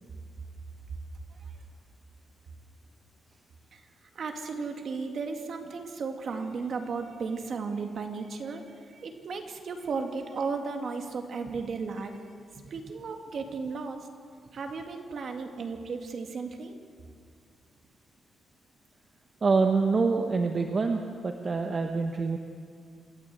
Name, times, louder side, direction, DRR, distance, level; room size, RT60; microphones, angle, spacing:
voice 1, 4.1-12.2 12.7-14.1 14.5-16.8, right 4 dB, 50° right, 4 dB, 2.3 m, -35 dB
voice 2, 19.4-22.4, right 4 dB, 35° right, 4 dB, 1.1 m, -26 dB
27.5 x 13.5 x 7.8 m, 2.1 s
cardioid pair, 140°, 0 cm